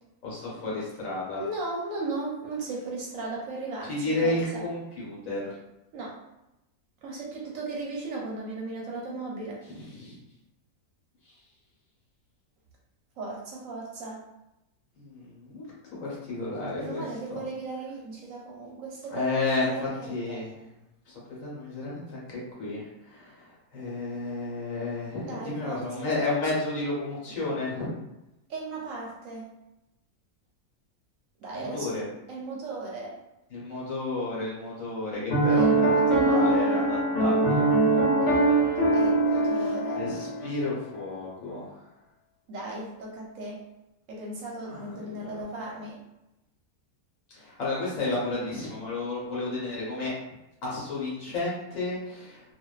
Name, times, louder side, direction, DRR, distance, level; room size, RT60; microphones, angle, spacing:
voice 1, 0.2-1.4 3.9-5.5 9.7-10.2 15.0-17.0 17.3-17.4 19.1-20.5 21.1-27.9 31.5-32.0 33.5-38.0 38.2-38.4 38.8-39.0 39.5-41.8 44.7-45.4 47.3-50.1 50.6-52.4, left 2 dB, 65° left, -6 dB, 1.2 m, -32 dB
voice 2, 1.4-4.6 5.9-6.2 7.0-9.6 13.2-14.2 16.8-20.5 25.3-26.1 28.5-29.5 31.4-33.2 35.5-36.6 38.9-40.1 42.5-43.6 44.1-46.0, right 3 dB, 70° right, -3 dB, 0.9 m, -36 dB
Piano, 35.3-40.6, right 2 dB, 50° left, 1.1 m, -22 dB
2.4 x 2.3 x 2.2 m, 0.93 s
omnidirectional pair, 1.6 m